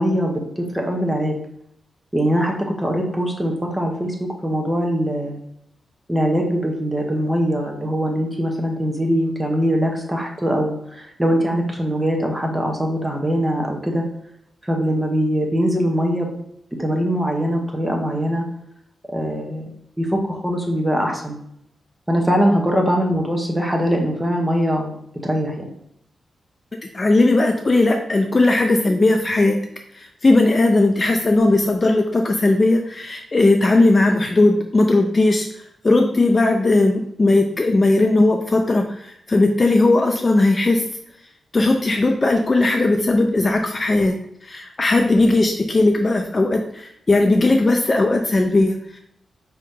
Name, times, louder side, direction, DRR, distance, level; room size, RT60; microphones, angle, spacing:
voice 1, 0.0-1.4 2.1-5.4 6.1-14.0 14.6-16.4 16.8-18.4 19.1-19.7 20.0-21.4 22.1-24.9 25.2-25.7, equal, 10° right, 0 dB, 0.9 m, -22 dB
voice 2, 26.9-29.6 29.9-40.9 41.5-44.1 44.4-49.0, left 2 dB, 30° left, 4 dB, 0.4 m, -17 dB
5.1 x 2.8 x 3.6 m, 0.73 s
wide cardioid pair, 135°, 0 cm